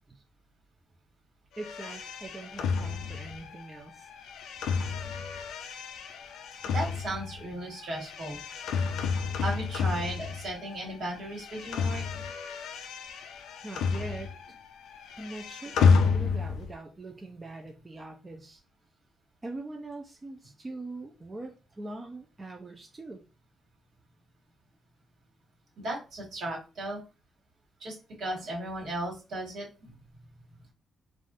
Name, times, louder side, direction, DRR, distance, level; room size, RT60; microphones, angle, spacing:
sound 1, 1.6-10.9 11.1-14.6 14.8-16.7, left 5 dB, 85° left, 0.4 m, -30 dB
voice 1, 1.6-4.1 13.6-14.3 15.2-18.6 19.4-23.2, right 2 dB, 20° right, 2 dB, 0.4 m, -42 dB
voice 2, 6.6-8.4 9.4-12.0 25.8-27.0 27.8-30.0, right 1 dB, 70° right, -1 dB, 1.6 m, -36 dB
3.3 x 2.4 x 2.6 m, 0.30 s
cardioid pair, 150°, 0 cm